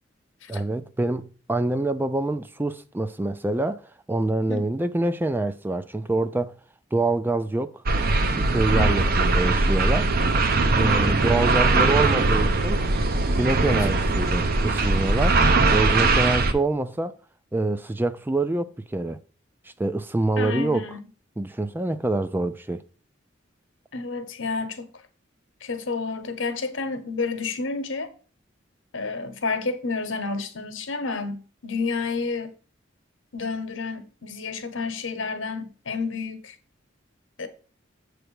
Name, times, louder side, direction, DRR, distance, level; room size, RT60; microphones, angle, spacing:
voice 1, 0.5-3.8 4.1-6.6 6.9-7.7 8.3-10.1 10.8-12.8 13.4-15.4 15.7-17.2 17.5-19.2 19.8-20.9 21.4-22.8, right 2 dB, 10° right, 0.3 m, -25 dB
sound 1, 7.9-16.5, right 3 dB, 50° right, 0.7 m, -21 dB
voice 2, 8.7-9.1 10.8-11.3 20.4-21.0 23.9-24.9 25.6-28.1 28.9-32.5 33.3-36.5 37.4-37.5, left 4 dB, 75° left, 1.0 m, -30 dB
7.9 x 3.3 x 6.3 m
head